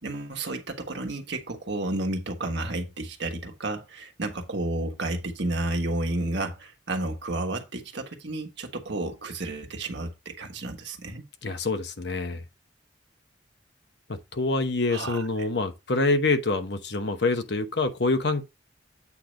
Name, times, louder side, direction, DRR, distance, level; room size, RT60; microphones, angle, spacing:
voice 1, 0.0-11.2 14.9-15.2, right 2 dB, 70° right, 1.4 m, -31 dB
voice 2, 11.4-12.4 14.1-18.4, left 3 dB, 65° left, 1.0 m, -26 dB
8.4 x 3.4 x 5.1 m
head